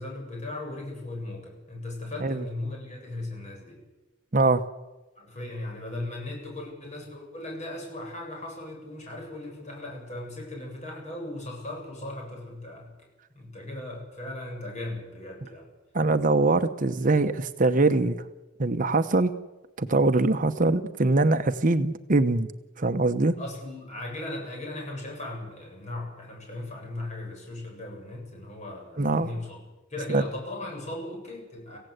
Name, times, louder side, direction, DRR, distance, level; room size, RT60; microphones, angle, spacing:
voice 1, 0.0-3.8 5.2-12.9 13.3-15.7 23.4-29.6 29.9-31.8, left 2 dB, 40° left, 0 dB, 7.6 m, -37 dB
voice 2, 15.9-18.2 18.6-19.3 19.8-22.5 22.8-23.3 29.0-29.3 30.1-30.2, right 2 dB, 45° right, 9 dB, 0.9 m, -23 dB
25.5 x 16.0 x 8.1 m, 1.1 s
head